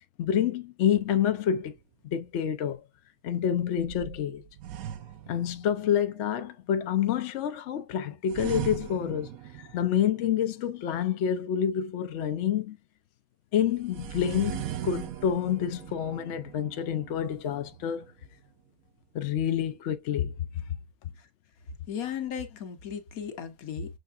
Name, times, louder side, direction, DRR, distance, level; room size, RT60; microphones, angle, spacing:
voice 1, 0.2-1.7 2.0-2.8 3.2-4.4 5.3-9.3 9.6-12.8 13.5-18.1 19.1-20.3, left 9 dB, 65° left, 0.9 m, -28 dB
sound 1, 0.8-1.8 3.7-6.1 8.3-10.4 13.7-18.4, right 11 dB, 85° right, 1.1 m, -40 dB
voice 2, 21.9-24.0, left 8 dB, 80° left, 1.4 m, -35 dB
6.6 x 3.3 x 2.4 m
omnidirectional pair, 1.5 m